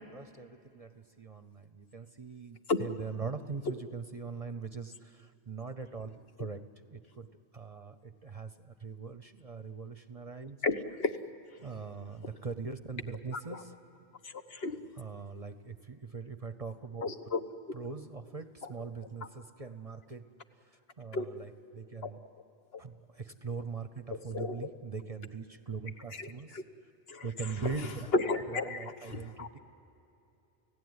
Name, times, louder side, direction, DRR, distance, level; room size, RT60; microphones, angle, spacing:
voice 1, 0.0-6.6 6.9-7.3 7.5-10.6 11.6-13.7 15.0-17.1 17.7-20.2 21.0-22.2 22.8-26.5 27.2-28.1 28.5-29.6, right 5 dB, 35° right, 0.8 m, -41 dB
voice 2, 10.6-11.1 13.5-13.6 14.5-14.8 17.0-17.4 21.1-21.2 22.0-22.1 24.3-24.6 26.2-26.3 26.5-26.6 27.1-27.2 28.1-29.5, left 3 dB, 60° left, 1.4 m, -32 dB
29.5 x 17.0 x 9.6 m
omnidirectional pair, 1.1 m